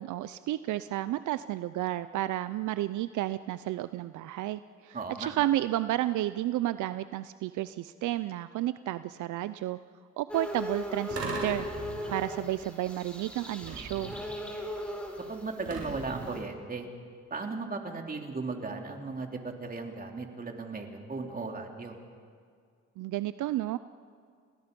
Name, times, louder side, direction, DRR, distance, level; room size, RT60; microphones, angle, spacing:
voice 1, 0.0-9.8 10.2-11.7 12.1-14.1 23.0-23.8, right 14 dB, 75° right, 14 dB, 0.5 m, -32 dB
voice 2, 4.9-5.3 15.3-16.9 17.3-22.0, right 3 dB, 30° right, 2 dB, 3.0 m, -36 dB
sound 1, 10.3-16.4, left 1 dB, 5° left, 4.5 m, -39 dB
sound 2, 11.1-12.5 13.6-14.5 15.7-16.6, right 3 dB, 50° right, 5.6 m, -39 dB
29.5 x 19.5 x 5.3 m, 2.2 s
cardioid pair, 90°, 30 cm